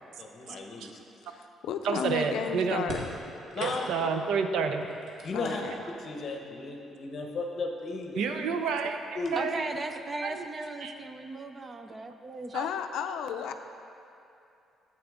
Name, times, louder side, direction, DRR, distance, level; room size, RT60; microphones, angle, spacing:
voice 1, 0.2-1.0 3.5-3.8 5.2-5.6 6.0-8.4 9.1-9.4, left 3 dB, 40° left, 2 dB, 0.9 m, -35 dB
voice 2, 1.3-3.0 5.3-5.8 12.5-13.5, left 8 dB, 80° left, 7 dB, 0.4 m, -33 dB
voice 3, 1.8-2.9 3.6-4.9 8.2-9.0 9.3-9.7 10.2-10.5 10.8-10.9 12.5-12.7 13.1-13.2, right 5 dB, 75° right, 6 dB, 0.5 m, -29 dB
sound 1, 2.8-4.2 4.8-6.0 7.0-7.1 8.1-8.2 8.7-9.2, right 1 dB, 55° right, 1.5 m, -42 dB
voice 4, 9.4-12.6, right 2 dB, 20° right, 7 dB, 0.4 m, -37 dB
8.7 x 7.9 x 3.6 m, 2.7 s
cardioid pair, 145°, 0 cm